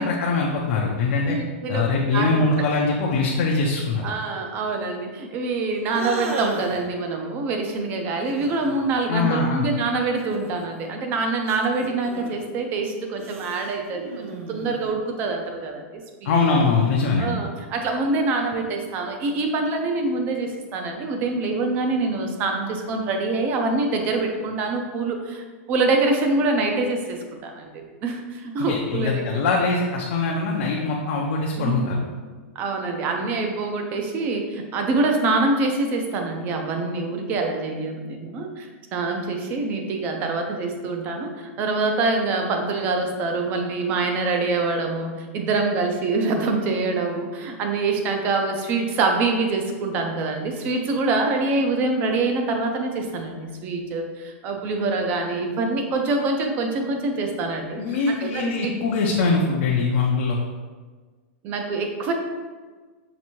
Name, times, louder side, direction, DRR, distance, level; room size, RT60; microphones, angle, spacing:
voice 1, 0.0-1.4 1.7-4.1 9.1-9.7 16.2-17.4 28.6-31.9 57.8-60.4, left 4 dB, 50° left, -2 dB, 0.5 m, -22 dB
voice 2, 1.3-1.8 2.1-2.4 4.0-16.3 17.2-29.4 31.6-32.0 32.6-57.8 58.2-58.7 61.4-62.1, right 3 dB, 25° right, 3 dB, 0.5 m, -25 dB
sound 1, 5.9-6.9 8.3-8.9 10.2-10.9 11.4-12.4 13.2-15.0, right 3 dB, 90° right, 0.6 m, -35 dB
5.8 x 2.6 x 2.9 m, 1.4 s
supercardioid pair, 165°, 7 cm